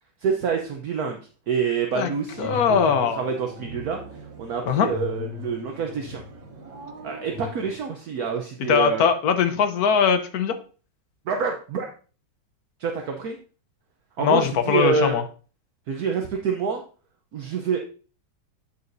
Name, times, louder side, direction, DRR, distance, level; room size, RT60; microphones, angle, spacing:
voice 1, 0.2-1.2 1.5-6.2 7.0-9.0 11.3-11.9 12.8-13.4 14.2-15.2 15.9-16.8 17.3-17.8, right 6 dB, 65° right, 3 dB, 1.2 m, -27 dB
sound 1, 2.3-7.8, left 3 dB, 90° right, 2.0 m, -38 dB
voice 2, 2.4-3.2 4.7-4.9 8.7-10.5 14.2-15.2, left 7 dB, 65° left, 8 dB, 1.2 m, -21 dB
8.7 x 6.7 x 2.6 m, 0.38 s
omnidirectional pair, 2.0 m